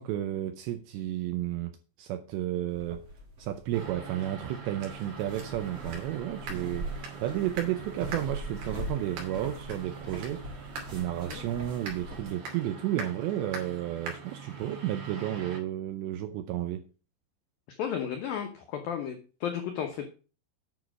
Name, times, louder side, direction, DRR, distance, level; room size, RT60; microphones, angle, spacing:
voice 1, 0.0-3.1 3.4-10.5 10.9-16.9, right 12 dB, 80° right, 2.5 m, -32 dB
sound 1, 2.7-12.2, right 1 dB, 35° right, 4.5 m, -42 dB
sound 2, 3.7-15.6, right 4 dB, 55° right, 4.4 m, -42 dB
voice 2, 17.8-20.1, left 8 dB, 85° left, 2.0 m, -33 dB
9.4 x 6.1 x 6.1 m
omnidirectional pair, 5.7 m